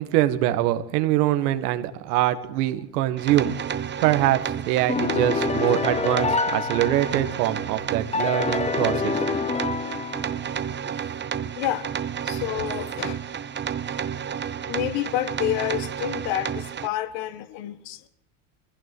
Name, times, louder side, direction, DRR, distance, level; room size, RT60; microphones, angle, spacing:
voice 1, 0.0-3.5 4.0-9.2, right 14 dB, 85° right, 1.9 m, -23 dB
sound 1, 3.2-16.9, right 8 dB, 25° right, 0.9 m, -31 dB
sound 2, 4.9-7.5 8.1-10.6, left 5 dB, 15° left, 0.7 m, -27 dB
voice 2, 11.4-11.9 12.2-13.2 14.7-18.1, left 13 dB, 65° left, 1.8 m, -29 dB
23.5 x 15.5 x 7.9 m
supercardioid pair, 115°, 45 cm